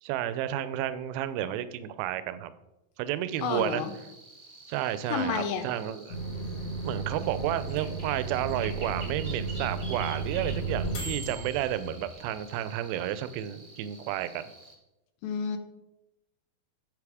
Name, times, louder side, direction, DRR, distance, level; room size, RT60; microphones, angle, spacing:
voice 1, 0.0-2.5 3.0-3.8 4.7-6.2 6.8-14.5, right 12 dB, 85° right, 13 dB, 2.4 m, -31 dB
sound 1, 3.3-14.8, right 3 dB, 40° right, 1.1 m, -48 dB
voice 2, 3.4-3.9 5.1-5.7 15.2-15.6, left 6 dB, 80° left, 7 dB, 2.6 m, -30 dB
sound 2, 6.1-12.5, right 3 dB, 55° left, 1.2 m, -34 dB
8.4 x 6.7 x 4.8 m, 0.93 s
omnidirectional pair, 4.3 m